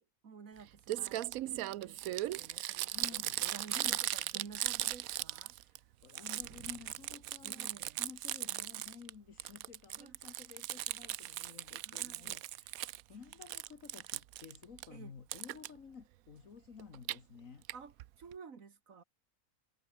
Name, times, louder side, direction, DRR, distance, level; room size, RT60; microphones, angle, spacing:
voice 1, 0.0-5.9 7.4-8.0 10.0-10.2 11.8-12.4 14.9-15.1 17.7-19.0, right 5 dB, 70° right, 2.2 m, -53 dB
Crumpling crinkling, 0.6-0.7 0.9-5.8 6.0-9.1 9.4-13.0 13.3-14.9 15.3-15.7 16.8-17.2 17.7-17.8 18.0-18.1 18.3-18.4, right 14 dB, 85° right, 1.1 m, -38 dB
voice 2, 2.9-3.4 3.8-4.0 5.5-17.6, left 6 dB, 65° left, 2.1 m, -53 dB
omnidirectional pair, 1.5 m